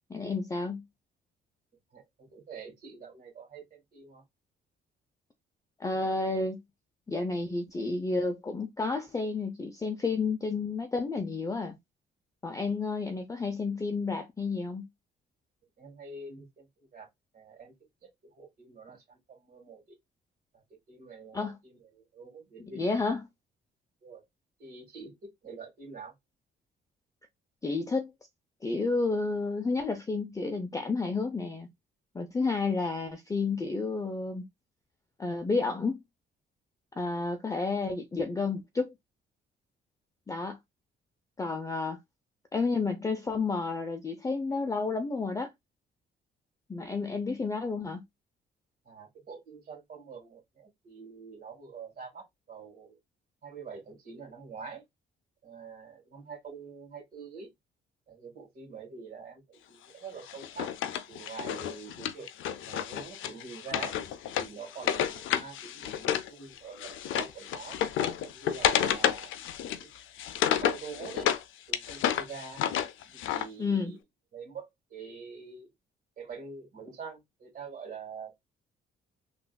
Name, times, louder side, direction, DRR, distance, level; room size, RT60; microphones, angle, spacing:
voice 1, 0.1-0.8 5.8-6.6 7.1-11.8 12.4-14.9 21.3-21.6 22.6-23.3 27.6-28.1 28.6-31.7 32.1-34.5 35.2-36.0 36.9-38.9 40.3-40.6 41.4-42.0 42.5-45.5 46.7-48.0 73.6-74.0, left 3 dB, 15° left, 0.5 m, -31 dB
voice 2, 2.3-4.2 15.8-17.1 17.3-17.7 18.0-19.8 20.9-21.7 22.1-22.9 24.0-24.2 24.6-26.1 48.9-53.0 53.4-54.8 55.4-57.5 58.1-60.7 61.1-62.3 62.6-63.9 64.4-67.8 68.2-69.3 69.7-69.9 70.6-71.3 71.7-72.6 73.1-73.9 74.3-75.7 76.2-78.4, right 5 dB, 50° right, 1.7 m, -45 dB
Wood, 60.3-66.3 66.6-71.4 71.7-73.5, left 10 dB, 80° left, 0.5 m, -31 dB
3.4 x 2.5 x 2.2 m
cardioid pair, 90°, 20 cm